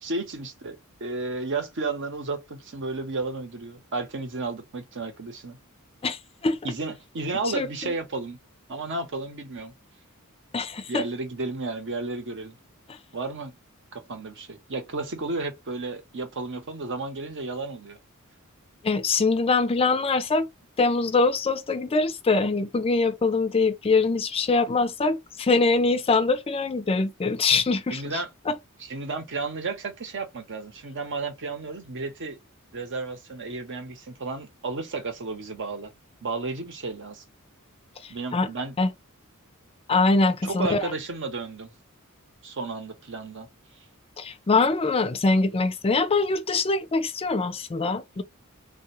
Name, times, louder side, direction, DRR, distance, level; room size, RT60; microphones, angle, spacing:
voice 1, 0.0-5.6 6.6-8.4 8.7-9.7 10.9-12.6 13.1-13.5 13.9-18.0 27.9-28.3 28.8-32.4 32.7-35.9 36.2-37.2 38.1-38.8 40.4-41.7 42.4-43.5, right 3 dB, 60° right, 0.9 m, -33 dB
voice 2, 6.0-6.6 7.5-7.9 10.5-11.1 18.8-20.5 20.8-28.0 38.0-38.5 38.8-38.9 39.9-40.9 44.2-48.2, left 3 dB, 25° left, 0.4 m, -23 dB
3.3 x 2.3 x 3.0 m
head